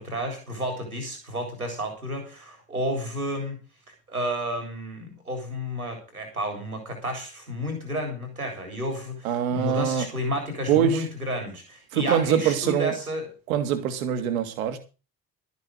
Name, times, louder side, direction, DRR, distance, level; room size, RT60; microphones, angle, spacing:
voice 1, 0.0-3.6 4.1-13.3, equal, 90° right, 3.9 m, -31 dB
voice 2, 9.2-10.1 10.7-11.0 11.9-12.9 13.5-14.8, right 9 dB, 75° right, 2.1 m, -24 dB
13.0 x 8.1 x 6.4 m
figure-of-eight pair, 45°, 42 cm